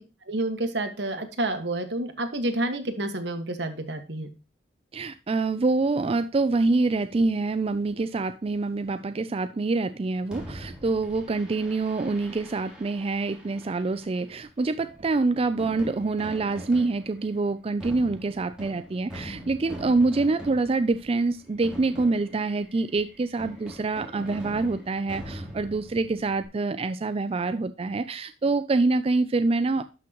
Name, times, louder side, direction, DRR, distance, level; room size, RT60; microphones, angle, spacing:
voice 1, 0.3-4.3, right 1 dB, 70° right, 7 dB, 1.7 m, -29 dB
voice 2, 4.9-29.8, right 3 dB, 35° right, 11 dB, 0.4 m, -26 dB
Fireworks, 10.3-26.4, equal, 5° right, 3.1 m, -43 dB
12.0 x 6.1 x 3.0 m, 0.32 s
head